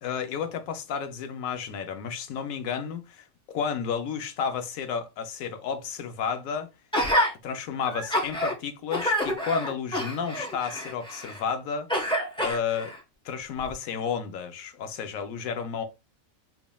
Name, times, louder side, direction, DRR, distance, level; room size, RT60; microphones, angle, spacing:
voice 1, 0.0-6.7 7.4-11.9 12.4-12.9 13.2-15.8, left 7 dB, 80° left, 1.1 m, -32 dB
Gasp, 6.9-7.3 7.9-8.5 8.9-11.4 11.9-13.0 13.6-13.7, equal, 5° left, 0.7 m, -27 dB
3.9 x 3.5 x 2.2 m
omnidirectional pair, 1.4 m